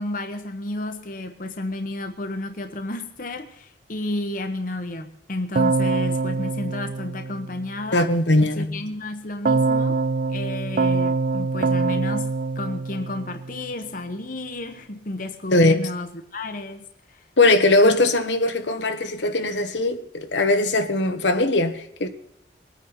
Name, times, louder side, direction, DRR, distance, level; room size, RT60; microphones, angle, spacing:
voice 1, 0.0-8.1 8.4-10.0 10.3-17.3 17.8-18.0, left 2 dB, 50° left, 1.2 m, -32 dB
Keyboard (musical), 5.6-7.9 9.5-13.7, right 4 dB, 45° right, 0.4 m, -24 dB
voice 2, 7.9-8.8 15.5-15.9 17.4-22.1, left 2 dB, 75° left, 1.4 m, -20 dB
22.0 x 9.4 x 4.4 m
head